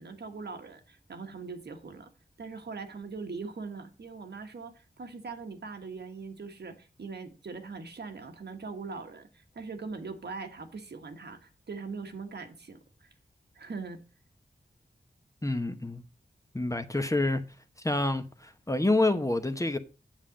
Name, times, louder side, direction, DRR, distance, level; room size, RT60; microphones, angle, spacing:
voice 1, 0.0-2.1 2.4-13.1 13.5-14.0, right 4 dB, 70° right, 1.3 m, -41 dB
voice 2, 15.4-16.0 16.5-17.4 17.8-19.8, left 2 dB, 20° left, 0.9 m, -27 dB
7.4 x 7.1 x 5.0 m
cardioid pair, 55°, 18 cm